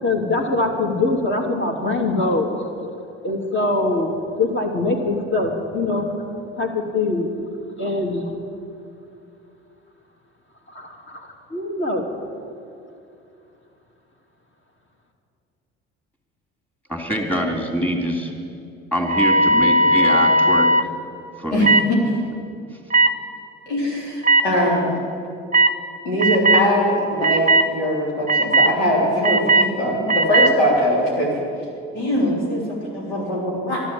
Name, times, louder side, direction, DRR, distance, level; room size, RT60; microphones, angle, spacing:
voice 1, 0.0-2.5 3.2-4.1 4.4-6.1 6.6-7.3 7.8-8.3 10.7-12.0, left 2 dB, 35° left, 1 dB, 2.9 m, -23 dB
voice 2, 16.9-18.3 18.9-20.7 21.4-21.8, equal, 5° left, 1 dB, 3.2 m, -24 dB
sound 1, 19.0-20.9 21.6-21.9 22.9-23.1 24.2-24.4 25.5-25.7 26.2-26.7 27.2-27.7 28.3-28.7 29.2-29.7 30.1-30.5, right 2 dB, 25° right, 0.8 m, -16 dB
voice 3, 21.5-22.1 23.7-24.8 26.0-31.3 31.9-33.8, equal, 90° left, -4 dB, 3.9 m, -21 dB
13.0 x 11.5 x 7.6 m, 2.6 s
hypercardioid pair, 60°, 33 cm